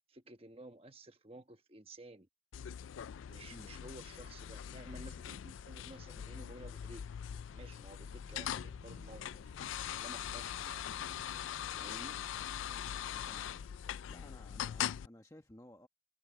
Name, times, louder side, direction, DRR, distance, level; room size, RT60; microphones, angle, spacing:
voice 1, 0.1-2.3 3.3-7.0 7.5-9.5 10.0-10.8 11.7-12.2, right 2 dB, 30° right, 1.2 m, -53 dB
sound 1, 2.5-15.1, left 9 dB, 85° left, 0.4 m, -42 dB
voice 2, 3.5-3.8 12.7-13.7 14.1-15.9, left 1 dB, 15° left, 1.1 m, -57 dB
sound 2, 7.4-13.1, right 3 dB, 90° right, 0.8 m, -63 dB
head